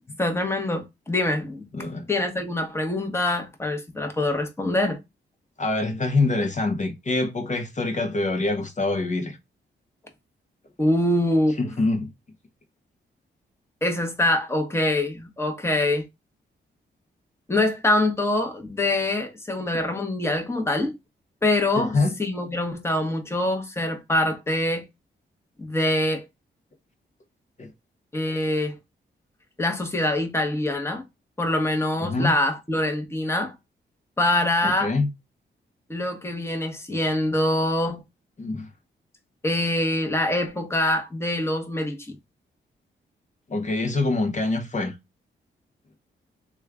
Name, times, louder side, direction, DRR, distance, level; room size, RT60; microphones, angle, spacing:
voice 1, 0.2-1.7 2.1-5.0 10.8-11.6 13.8-16.0 17.5-20.9 21.4-24.9 25.6-26.2 28.1-28.8 29.6-31.0 31.4-33.5 34.2-34.9 35.9-38.0 39.4-42.2, left 1 dB, 10° left, 1.0 m, -24 dB
voice 2, 1.7-2.1 5.6-9.4 11.6-12.1 21.8-22.2 27.6-27.7 32.0-32.3 34.6-35.1 38.4-38.7 43.5-44.9, left 3 dB, 35° left, 0.8 m, -25 dB
3.1 x 2.3 x 3.4 m
cardioid pair, 60°, 20 cm